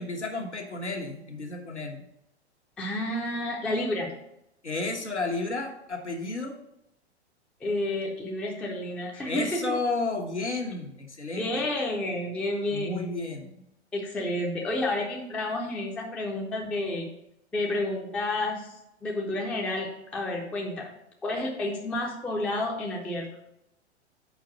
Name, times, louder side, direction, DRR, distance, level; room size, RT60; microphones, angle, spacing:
voice 1, 0.0-2.0 4.6-6.5 9.2-11.7 12.7-13.6, left 3 dB, 85° left, 1 dB, 1.3 m, -32 dB
voice 2, 2.8-4.1 7.6-9.6 11.4-13.1 13.9-17.1 17.5-18.8 19.0-20.9 21.2-23.3, left 1 dB, 5° left, 0 dB, 0.4 m, -30 dB
5.2 x 4.7 x 5.9 m, 0.82 s
figure-of-eight pair, 105°, 34 cm